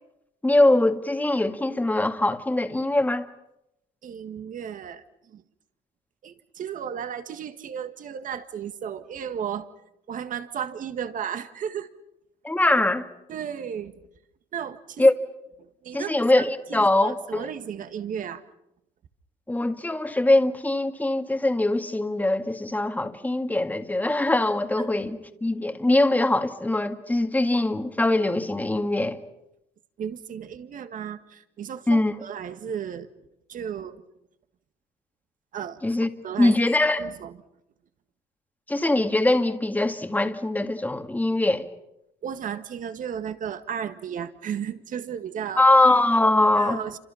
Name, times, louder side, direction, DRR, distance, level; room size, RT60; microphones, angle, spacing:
voice 1, 0.4-3.2 12.4-13.1 15.0-15.1 15.9-17.5 19.5-29.2 31.9-32.1 35.8-36.1 36.4-37.1 38.7-41.6 45.6-46.8, left 2 dB, 10° left, 2.0 m, -22 dB
voice 2, 4.0-5.4 6.2-9.7 10.1-11.9 13.3-13.9 14.5-15.0 15.6-16.4 16.7-18.4 24.8-24.9 30.0-33.1 33.5-34.0 35.5-35.8 36.2-36.6 37.0-37.3 42.2-45.6 46.6-47.0, right 8 dB, 50° right, 1.8 m, -34 dB
29.0 x 26.5 x 5.8 m
cardioid pair, 110°, 17 cm